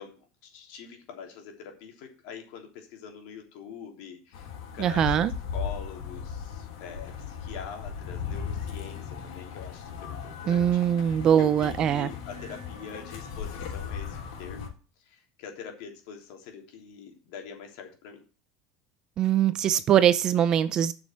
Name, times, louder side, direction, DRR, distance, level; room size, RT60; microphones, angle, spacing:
voice 1, 0.0-5.2 5.5-11.0 11.4-14.7 15.0-18.2, left 7 dB, 60° left, 3.3 m, -44 dB
sound 1, 4.3-14.7, left 6 dB, 85° left, 3.6 m, -37 dB
voice 2, 4.8-5.3 10.5-12.1 19.2-20.9, right 10 dB, 30° right, 0.5 m, -22 dB
8.6 x 6.3 x 7.6 m
cardioid pair, 180°, 2 cm